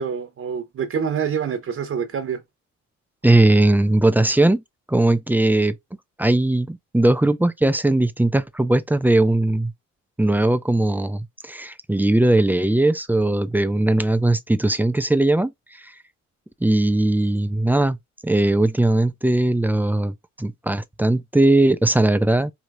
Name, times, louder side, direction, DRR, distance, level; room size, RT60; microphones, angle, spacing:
voice 1, 0.0-2.4, right 7 dB, 45° right, 0.9 m, -26 dB
voice 2, 3.2-4.6 4.9-5.8 6.2-9.7 10.2-15.5 15.8-15.9 16.6-18.0 18.2-22.5, right 2 dB, 5° right, 0.4 m, -19 dB
4.7 x 2.9 x 2.6 m
cardioid pair, 90°, 30 cm